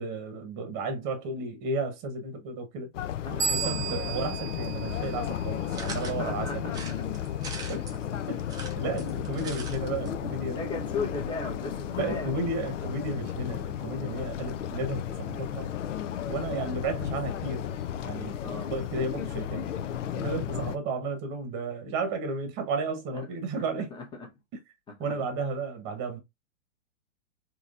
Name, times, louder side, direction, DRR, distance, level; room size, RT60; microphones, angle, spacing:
voice 1, 0.0-2.9 3.3-6.7 7.7-7.9 8.3-8.5 8.8-10.6 11.9-15.7 16.3-17.7 18.0-19.7 20.1-23.9 25.0-26.2, right 3 dB, 25° right, 1.0 m, -33 dB
sound 1, 2.9-20.8, left 10 dB, 65° left, 0.7 m, -34 dB
sound 2, 3.4-5.9, right 6 dB, 70° right, 0.9 m, -34 dB
voice 2, 3.8-4.2 5.6-5.7 6.1-7.2 7.9-8.2 8.9-9.6 9.9-12.6 18.4-18.7 20.5-20.7 23.1-23.3 23.9-24.3 24.9-25.2, left 4 dB, 10° left, 1.0 m, -38 dB
sound 3, 5.7-6.2 6.7-8.0 8.4-9.8 10.1-10.2 10.4-10.5, right 4 dB, 10° right, 0.6 m, -41 dB
3.8 x 2.9 x 2.4 m
hypercardioid pair, 125°, 40 cm